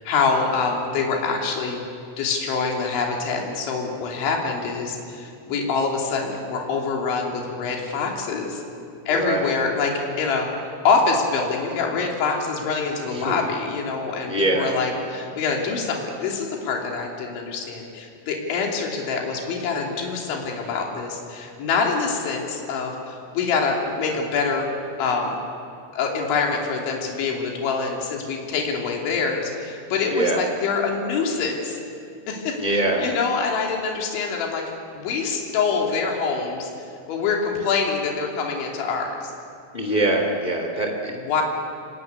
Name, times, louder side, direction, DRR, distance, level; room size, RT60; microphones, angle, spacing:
voice 1, 0.0-1.8 2.2-8.6 9.1-24.7 25.0-25.4 25.9-31.8 32.3-34.6 35.0-36.7 37.1-39.3 41.2-41.4, left 4 dB, 65° left, 0 dB, 5.2 m, -25 dB
voice 2, 9.1-9.5 13.1-13.4 14.3-14.8 30.1-30.4 32.6-33.1 39.7-41.1, right 1 dB, 25° left, 2 dB, 1.0 m, -23 dB
25.0 x 21.5 x 9.5 m, 2.5 s
omnidirectional pair, 5.8 m